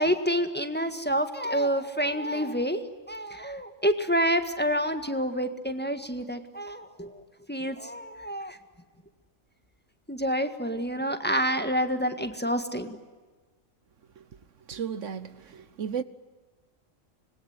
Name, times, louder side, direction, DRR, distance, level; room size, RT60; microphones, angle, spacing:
voice 1, 0.0-2.8 3.1-7.2 7.5-8.6 10.1-13.0, equal, 10° left, 1.7 m, -28 dB
voice 2, 14.7-16.0, right 7 dB, 70° right, 1.4 m, -34 dB
26.5 x 21.0 x 9.6 m
omnidirectional pair, 1.3 m